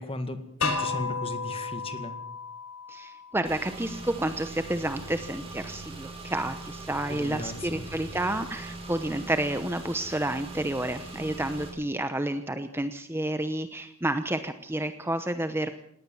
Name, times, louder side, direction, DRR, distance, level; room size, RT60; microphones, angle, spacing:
voice 1, 0.0-2.2 7.1-7.8, left 2 dB, 25° left, 8 dB, 2.0 m, -36 dB
sound 1, 0.6-3.5, left 4 dB, 85° left, 5.6 m, -33 dB
voice 2, 2.9-15.7, right 1 dB, 10° right, 9 dB, 0.8 m, -30 dB
Car / Engine, 3.4-11.7, right 2 dB, 25° right, 6.0 m, -41 dB
20.0 x 18.0 x 7.2 m, 0.72 s
head